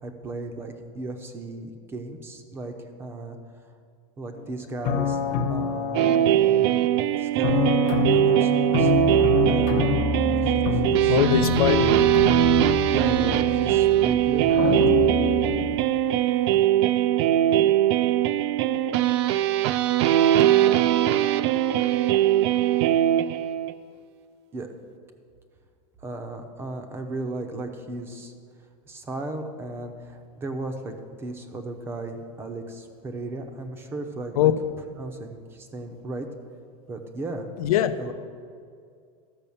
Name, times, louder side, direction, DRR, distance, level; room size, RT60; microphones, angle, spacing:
voice 1, 0.0-3.4 4.2-5.2 5.5-6.3 7.2-9.8 10.1-11.7 12.9-14.8 24.5-24.7 26.0-28.3 28.9-30.9 31.2-34.5 35.0-36.3 36.9-37.5 38.0-38.1, right 2 dB, 15° right, 5 dB, 0.7 m, -35 dB
sound 1, 4.4-4.5 4.8-6.9 7.4-15.8, left 5 dB, 40° left, 0.9 m, -27 dB
sound 2, 5.9-23.7, right 12 dB, 50° right, 0.4 m, -21 dB
voice 2, 11.1-12.0 34.4-34.5 37.6-38.0, left 11 dB, 90° left, 10 dB, 0.8 m, -21 dB
13.5 x 5.5 x 7.0 m, 2.2 s
supercardioid pair, 170°, 18 cm